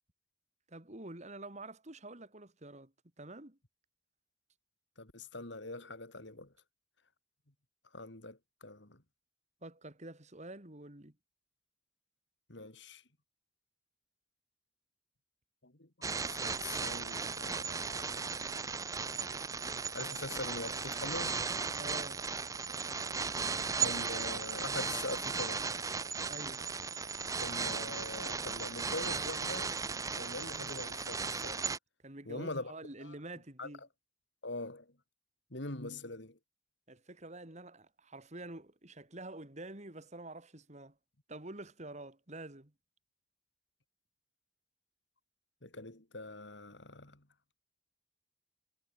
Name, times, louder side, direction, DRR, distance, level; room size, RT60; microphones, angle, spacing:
voice 1, 0.7-2.9 3.2-3.6 9.6-11.1 21.8-22.2 26.3-26.6 32.0-33.8 36.9-40.9 41.3-42.7, right 2 dB, 40° right, 2.8 m, -47 dB
voice 2, 5.0-6.5 7.9-9.0 12.5-13.0 15.6-15.9 16.3-18.1 18.5-18.9 19.2-19.3 19.9-21.4 23.8-25.6 27.4-29.7 30.1-31.6 32.3-32.7 33.0-33.1 33.6-33.7 34.4-34.9 35.5-36.4 45.6-47.2, left 2 dB, 65° left, 3.2 m, -43 dB
sound 1, 16.0-31.8, right 5 dB, 15° right, 0.5 m, -36 dB
head